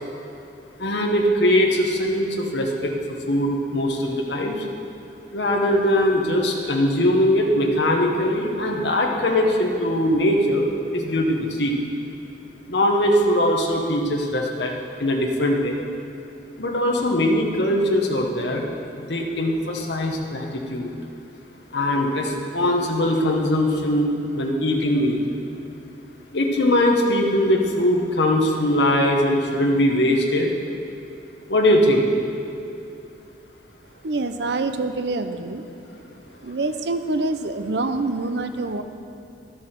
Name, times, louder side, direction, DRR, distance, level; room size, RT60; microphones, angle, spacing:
voice 1, 0.8-2.9 3.3-4.6 5.3-10.7 10.9-11.7 12.7-14.7 15.0-15.8 16.6-18.6 18.9-20.9 21.7-25.2 26.3-30.6 31.5-32.1, left 1 dB, 75° left, 0 dB, 1.2 m, -21 dB
voice 2, 34.0-35.6 36.4-38.8, right 2 dB, 70° right, 9 dB, 0.6 m, -26 dB
12.0 x 7.2 x 5.9 m, 2.7 s
head